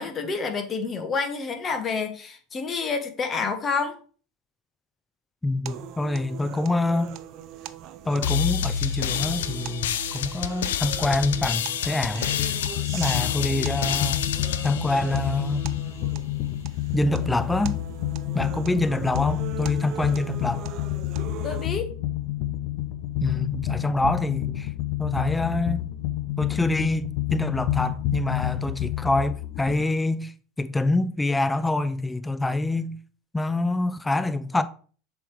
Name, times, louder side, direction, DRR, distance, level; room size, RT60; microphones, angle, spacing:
voice 1, 0.0-4.0 21.4-21.9, left 5 dB, 30° left, 1.3 m, -28 dB
voice 2, 5.4-7.1 8.1-12.3 12.9-14.3 14.6-15.6 16.9-17.8 18.3-20.7 23.2-24.7 25.0-25.9 26.4-30.3 30.6-33.0 33.3-34.6, left 2 dB, 10° left, 0.6 m, -26 dB
sound 1, 5.7-21.7, right 11 dB, 55° right, 0.5 m, -40 dB
sound 2, 8.2-15.7, left 9 dB, 80° left, 0.4 m, -29 dB
sound 3, 12.2-29.8, left 14 dB, 65° left, 0.8 m, -29 dB
6.9 x 3.5 x 4.8 m
hypercardioid pair, 95°, 0 cm